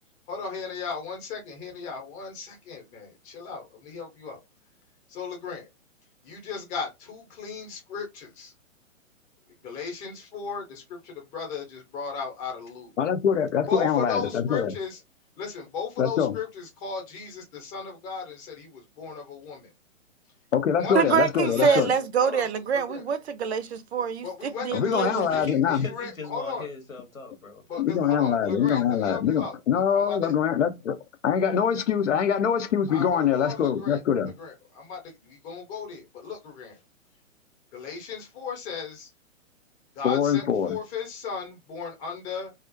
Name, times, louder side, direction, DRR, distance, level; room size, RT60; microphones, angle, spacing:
voice 1, 0.3-4.4 5.1-5.7 6.2-8.5 9.6-12.9 13.7-15.0 15.4-19.7 20.8-21.1 21.4-21.8 22.2-23.0 24.2-26.7 27.7-30.3 32.9-34.0 34.4-36.8 37.7-39.1 39.9-42.5, left 5 dB, 20° left, 0.7 m, -36 dB
voice 2, 13.0-14.7 16.0-16.3 20.5-21.9 24.7-25.9 27.8-31.0 31.2-34.3 40.0-40.8, left 8 dB, 65° left, 0.5 m, -24 dB
voice 3, 20.9-24.3 24.6-25.3, right 7 dB, 55° right, 0.5 m, -25 dB
voice 4, 25.2-27.8, left 3 dB, 90° left, 1.1 m, -40 dB
2.4 x 2.0 x 2.6 m
figure-of-eight pair, 120°, 40 cm